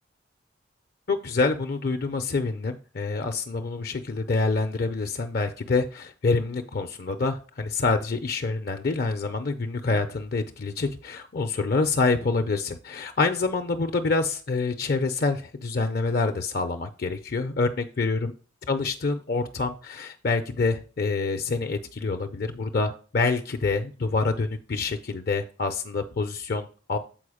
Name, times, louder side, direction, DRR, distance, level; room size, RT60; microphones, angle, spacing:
voice 1, 1.1-18.3 18.7-27.0, left 3 dB, 50° left, 7 dB, 0.5 m, -26 dB
7.7 x 4.5 x 4.9 m, 0.38 s
head